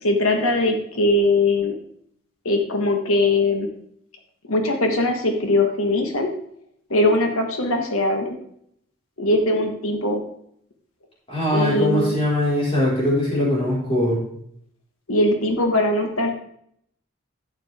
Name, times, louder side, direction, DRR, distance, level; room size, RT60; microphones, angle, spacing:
voice 1, 0.0-1.7 2.4-3.7 4.5-6.3 6.9-8.4 9.2-10.2 11.5-12.2 15.1-16.3, left 2 dB, 75° left, 4 dB, 1.6 m, -21 dB
voice 2, 11.3-14.2, left 1 dB, 25° left, -5 dB, 4.8 m, -21 dB
11.5 x 8.8 x 3.6 m, 0.69 s
head